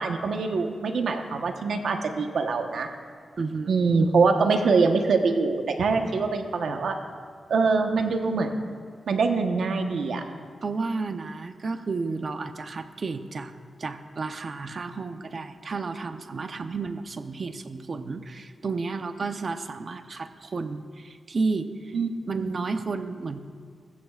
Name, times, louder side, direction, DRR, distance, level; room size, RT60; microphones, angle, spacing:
voice 1, 0.0-2.9 3.7-7.0 7.5-8.7 9.1-10.2 21.9-22.1 22.4-22.5, right 4 dB, 75° right, 4 dB, 1.1 m, -24 dB
voice 2, 3.4-3.7 10.2-13.5 13.8-22.0 22.3-23.4, right 4 dB, 45° right, 8 dB, 0.7 m, -32 dB
20.5 x 15.0 x 2.5 m, 2.1 s
wide cardioid pair, 115°, 0 cm